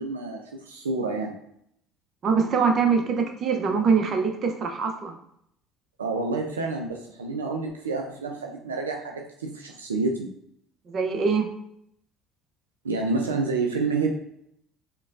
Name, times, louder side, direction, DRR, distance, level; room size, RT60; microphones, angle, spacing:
voice 1, 0.0-1.3 6.0-10.3 12.8-14.1, right 3 dB, 90° right, 1 dB, 0.4 m, -28 dB
voice 2, 2.2-5.2 10.9-11.5, right 5 dB, 45° right, 4 dB, 0.7 m, -23 dB
5.0 x 2.2 x 2.5 m, 0.72 s
hypercardioid pair, 60°, 0 cm